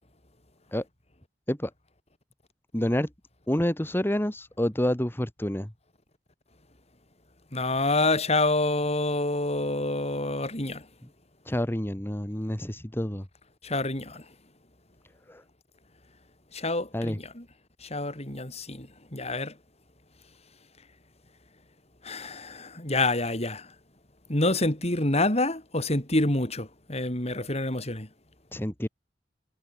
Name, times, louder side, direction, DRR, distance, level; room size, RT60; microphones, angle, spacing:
voice 1, 2.7-3.1 3.5-5.7 11.5-13.2 15.3-15.4 16.9-17.2 28.5-28.9, left 1 dB, 15° left, 1.5 m, -28 dB
voice 2, 7.5-10.9 13.6-14.3 16.5-17.5 17.8-19.6 22.0-23.7 24.3-28.1, left 2 dB, 35° left, 7.9 m, -27 dB
head